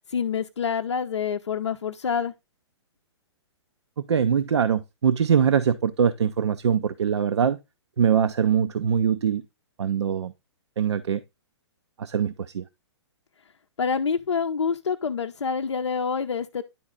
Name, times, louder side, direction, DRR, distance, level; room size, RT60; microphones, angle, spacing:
voice 1, 0.1-2.3 13.8-16.6, left 6 dB, 80° left, 0.5 m, -27 dB
voice 2, 4.1-7.6 8.0-9.4 9.8-10.3 10.8-11.2 12.0-12.6, right 7 dB, 75° right, 0.5 m, -22 dB
10.0 x 4.0 x 3.6 m
figure-of-eight pair, 120°, 15 cm